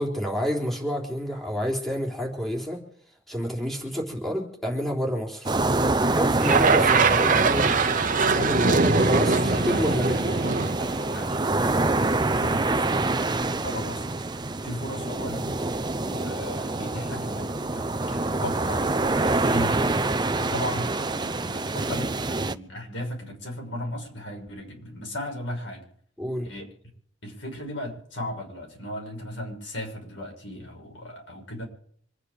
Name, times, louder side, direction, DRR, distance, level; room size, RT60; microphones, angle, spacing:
voice 1, 0.0-2.8 3.3-5.5 6.0-7.7 8.3-10.3 26.2-26.5, equal, ahead, -1 dB, 3.7 m, -29 dB
sound 1, 5.5-22.6, right 2 dB, 25° right, 0.6 m, -26 dB
sound 2, 6.4-11.7, right 4 dB, 45° right, 1.0 m, -23 dB
voice 2, 8.2-14.1 14.6-15.5 16.0-20.0 20.4-25.8 26.4-26.7 27.2-31.6, left 1 dB, 85° left, 2 dB, 6.3 m, -37 dB
26.0 x 9.9 x 5.0 m, 0.63 s
head